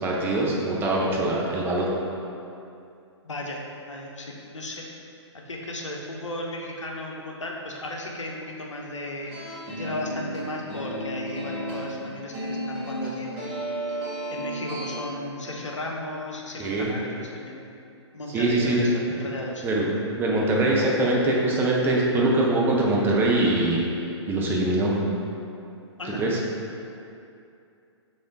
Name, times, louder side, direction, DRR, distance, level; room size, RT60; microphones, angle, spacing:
voice 1, 0.0-1.9 16.6-16.9 18.3-18.9 19.6-23.8 24.3-25.0 26.2-26.4, right 2 dB, 15° right, -3 dB, 0.5 m, -23 dB
voice 2, 3.2-3.6 3.9-4.8 5.5-9.3 9.8-13.5 14.3-17.7 18.1-19.6 26.0-26.2, left 1 dB, 85° left, -1 dB, 0.7 m, -35 dB
sound 1, 9.2-15.0, right 1 dB, 30° right, 1.2 m, -33 dB
3.5 x 3.4 x 3.9 m, 2.6 s
figure-of-eight pair, 125°, 15 cm